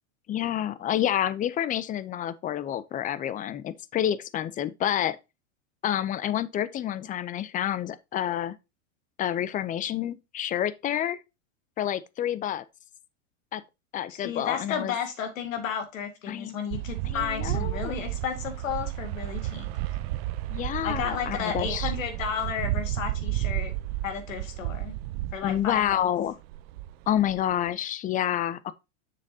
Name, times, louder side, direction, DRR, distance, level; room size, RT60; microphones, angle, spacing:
voice 1, 0.3-5.2 5.8-8.6 9.2-11.2 11.8-12.6 13.5-13.6 13.9-15.0 16.3-16.6 17.0-18.0 20.5-21.9 25.4-26.4 27.1-28.7, left 11 dB, 20° left, 0.5 m, -28 dB
voice 2, 14.1-20.0 20.8-23.7 24.0-25.0 25.3-26.0, left 7 dB, 85° left, 2.5 m, -33 dB
sound 1, 16.7-26.1 26.4-27.7, right 15 dB, 50° right, 0.6 m, -32 dB
7.2 x 6.7 x 2.7 m
supercardioid pair, 125°, 38 cm